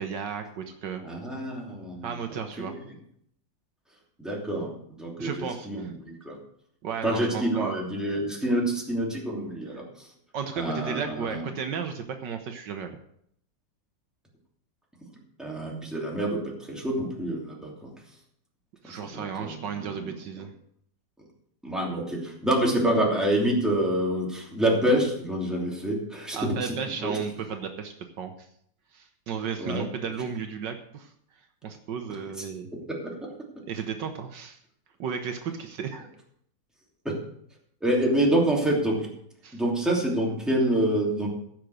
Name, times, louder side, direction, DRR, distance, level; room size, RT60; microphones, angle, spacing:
voice 1, 0.0-1.0 2.0-2.7 5.2-5.9 6.8-7.8 9.7-9.8 10.3-13.0 18.8-20.5 26.3-28.5 28.9-31.1 31.6-32.7 33.7-34.6 35.0-36.1 39.4-39.6, right 6 dB, 70° right, 6 dB, 1.5 m, -34 dB
voice 2, 1.0-2.9 4.2-6.4 7.0-10.1 10.6-11.5 15.1-17.9 18.9-20.1 21.6-27.2 29.6-29.8 32.9-33.1 37.0-37.2 37.8-39.1 39.5-41.3, right 1 dB, ahead, -3 dB, 2.8 m, -27 dB
15.5 x 6.1 x 6.4 m, 0.69 s
omnidirectional pair, 2.0 m